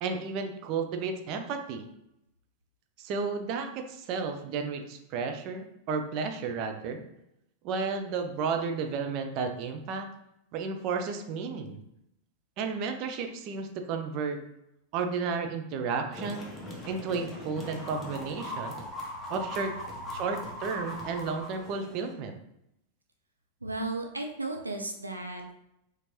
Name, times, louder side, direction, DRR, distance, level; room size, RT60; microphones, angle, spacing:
voice 1, 0.0-1.9 3.0-7.0 7.6-10.1 10.5-11.8 12.6-14.4 14.9-16.5 16.9-18.7 19.3-19.7 20.1-22.4, right 5 dB, 40° right, 5 dB, 0.6 m, -32 dB
sound 1, 16.1-22.1, left 1 dB, 10° left, 1.1 m, -40 dB
voice 2, 23.6-25.6, right 2 dB, 85° right, 3 dB, 0.5 m, -35 dB
4.3 x 3.9 x 3.1 m, 0.82 s
figure-of-eight pair, 90°, 0 cm